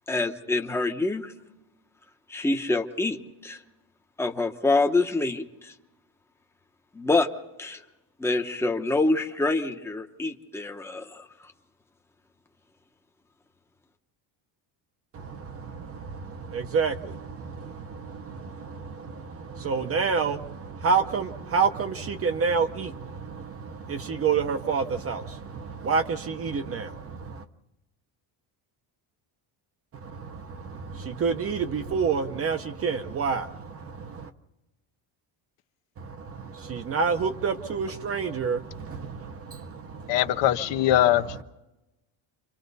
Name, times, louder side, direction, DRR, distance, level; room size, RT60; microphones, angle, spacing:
voice 1, 0.1-1.3 2.3-3.2 3.4-3.6 4.2-5.7 6.9-7.3 7.6-7.8 8.2-11.3, left 2 dB, 5° left, 4 dB, 0.8 m, -26 dB
voice 2, 15.1-27.4 29.9-34.3 36.6-40.2, right 5 dB, 30° right, 9 dB, 0.7 m, -29 dB
voice 3, 40.1-41.4, left 12 dB, 65° left, 10 dB, 0.9 m, -22 dB
29.0 x 25.0 x 4.1 m, 1.0 s
cardioid pair, 170°, 48 cm